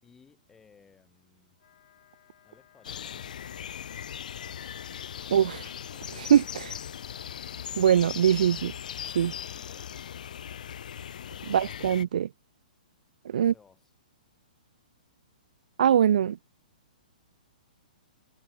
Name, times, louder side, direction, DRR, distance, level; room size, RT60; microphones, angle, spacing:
voice 1, 0.0-1.6 2.4-3.8 9.6-9.9 13.3-13.9, left 6 dB, 10° left, 6.0 m, -60 dB
Wind instrument woodwind instrument, 1.5-10.8, left 13 dB, 45° left, 6.5 m, -62 dB
sound 1, 2.8-12.0, left 9 dB, 65° left, 2.5 m, -39 dB
voice 2, 5.3-5.6 6.1-6.7 7.8-8.7 9.2-9.3 11.5-12.3 13.3-13.5 15.8-16.4, right 9 dB, 65° right, 0.5 m, -22 dB
hypercardioid pair, 165°, 5 cm